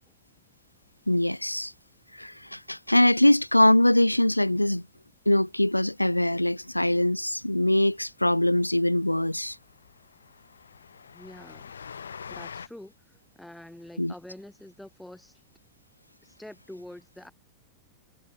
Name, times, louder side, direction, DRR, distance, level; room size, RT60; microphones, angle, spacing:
voice 1, 1.1-1.7 2.1-4.8 5.3-9.6 14.0-14.1, left 1 dB, 85° left, 0.5 m, -22 dB
Train, 8.1-8.2 8.5-8.6 8.9-9.0 9.3-12.7, left 6 dB, 70° left, 7.4 m, -44 dB
voice 2, 11.1-11.7 12.3-15.4 16.2-17.3, left 1 dB, 5° left, 7.9 m, -46 dB
figure-of-eight pair, 90°, 0 cm